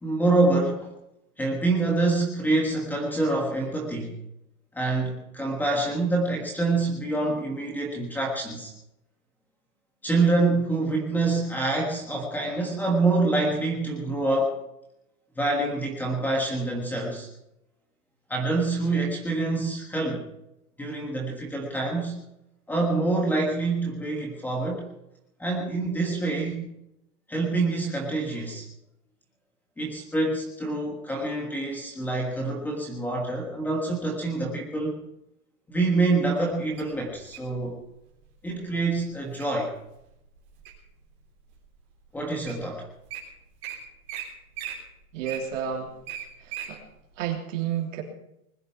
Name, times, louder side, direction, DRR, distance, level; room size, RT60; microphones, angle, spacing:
voice 1, 0.0-0.9 1.4-4.2 4.7-8.7 10.0-14.6 15.4-17.3 18.3-20.3 20.8-22.2 22.7-24.9 25.4-26.7 27.3-28.7 29.8-35.0 35.7-37.8 38.4-39.7 42.1-42.8, right 2 dB, 5° left, 0 dB, 1.4 m, -26 dB
Wild animals, 36.8-37.5 38.2-38.5 39.0-39.5 40.0-40.9 41.5-41.6 42.2-42.3 42.5-42.6 42.9-43.2 43.6-43.8 44.1-44.2 44.5-46.7 47.2-47.3, right 11 dB, 25° right, 3.5 m, -37 dB
voice 2, 45.1-45.9 46.7-46.8 47.2-48.0, right 9 dB, 55° right, 1 dB, 3.2 m, -30 dB
20.5 x 10.5 x 5.9 m, 0.83 s
supercardioid pair, 180°, 44 cm